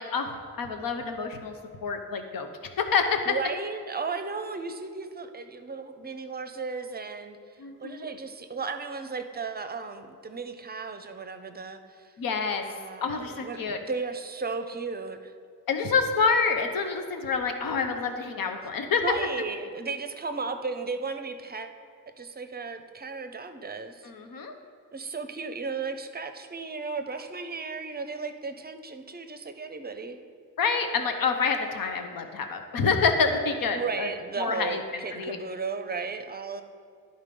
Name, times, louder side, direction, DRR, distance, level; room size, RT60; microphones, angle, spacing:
voice 1, 0.0-1.5 1.8-2.5 2.8-3.2 7.6-8.1 12.2-12.6 13.0-13.8 15.7-19.0 24.0-24.5 30.6-34.1 34.4-34.8 35.1-35.4, left 5 dB, 80° left, 5 dB, 0.9 m, -27 dB
voice 2, 3.3-7.4 7.8-12.1 12.7-15.3 19.0-21.7 22.2-24.1 24.9-30.2 33.7-36.6, right 4 dB, 30° right, 8 dB, 0.5 m, -35 dB
11.0 x 4.0 x 5.2 m, 2.2 s
cardioid pair, 90°, 34 cm